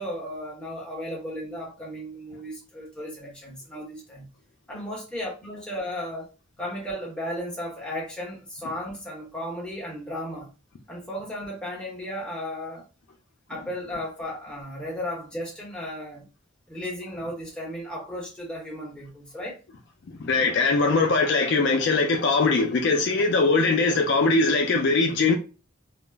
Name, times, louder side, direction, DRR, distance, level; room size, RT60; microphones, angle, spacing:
voice 1, 0.0-4.3 4.7-6.3 6.6-10.5 10.9-12.9 13.5-16.3 16.7-19.6, equal, 5° left, 0.9 m, -35 dB
voice 2, 20.2-25.3, left 3 dB, 55° left, 0.4 m, -21 dB
2.3 x 2.0 x 3.3 m
head